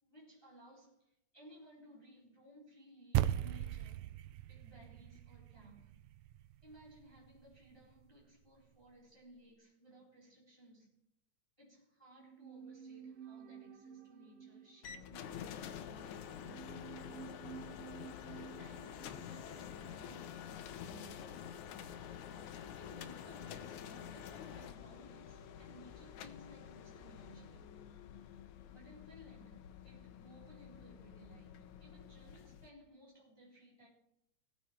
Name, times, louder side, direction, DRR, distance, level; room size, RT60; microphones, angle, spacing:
voice 1, 0.0-4.0 4.5-6.0 6.6-10.9 11.6-16.9 18.2-21.6 22.8-27.7 28.7-33.9, equal, 10° left, -4 dB, 4.0 m, -59 dB
sound 1, 3.1-7.7, right 13 dB, 85° right, 2.0 m, -38 dB
sound 2, 12.1-21.5 21.7-21.8, right 7 dB, 65° right, 2.2 m, -54 dB
sound 3, 14.8-32.7, left 9 dB, 80° left, 2.3 m, -49 dB
19.0 x 7.3 x 4.6 m, 0.83 s
omnidirectional pair, 3.4 m